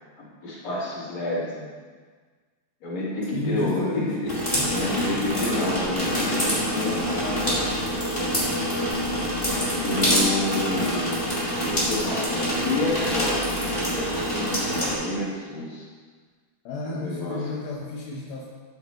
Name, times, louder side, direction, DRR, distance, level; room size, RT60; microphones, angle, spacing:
voice 1, 0.2-1.7 2.8-4.3 4.7-7.6 9.2-11.2 11.7-15.9 16.8-17.4, left 2 dB, 40° left, -8 dB, 3.6 m, -29 dB
voice 2, 3.3-4.2 4.5-5.3 16.6-18.5, left 2 dB, 75° left, -4 dB, 2.2 m, -32 dB
sound 1, 4.3-14.9, equal, 15° left, 0.9 m, -26 dB
12.0 x 9.2 x 3.2 m, 1.5 s
omnidirectional pair, 5.7 m